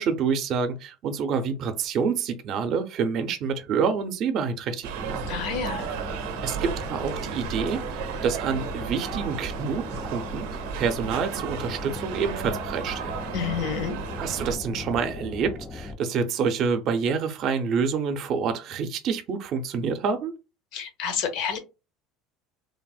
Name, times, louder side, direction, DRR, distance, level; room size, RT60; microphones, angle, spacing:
voice 1, 0.0-5.2 6.4-10.5 10.7-13.1 14.2-20.3, right 6 dB, 45° right, 0.5 m, -27 dB
sound 1, 4.8-14.6, right 8 dB, 90° right, 0.5 m, -34 dB
sound 2, 5.0-16.0, left 4 dB, 20° left, 0.3 m, -38 dB
voice 2, 5.3-5.9 13.3-14.0 20.7-21.6, left 7 dB, 60° left, 0.8 m, -29 dB
3.2 x 2.0 x 2.3 m
cardioid pair, 150°, 0 cm